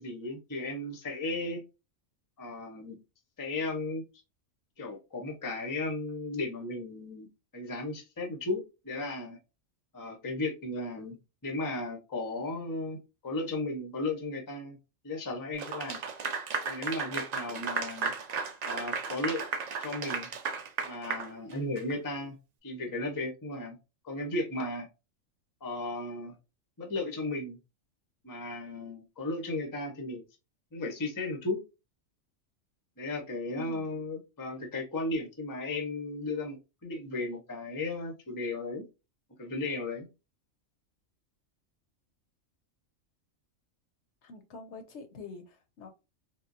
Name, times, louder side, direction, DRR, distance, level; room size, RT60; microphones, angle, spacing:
voice 1, 0.0-1.6 2.4-3.0 3.4-4.0 4.8-7.3 7.5-9.4 9.9-13.0 13.2-14.8 15.0-16.0 16.6-18.1 18.6-19.4 19.8-20.3 20.9-22.4 22.6-23.8 24.0-24.9 25.6-26.4 26.8-27.6 28.2-30.2 30.7-31.6 33.0-36.6 36.8-38.8 39.4-40.1, left 2 dB, 20° left, 3 dB, 0.5 m, -35 dB
Clapping / Applause, 15.6-21.9, right 5 dB, 75° right, 0.3 m, -34 dB
voice 2, 33.5-33.9 44.2-45.9, left 2 dB, 65° left, 7 dB, 0.9 m, -45 dB
3.7 x 2.1 x 2.5 m, 0.28 s
omnidirectional pair, 1.3 m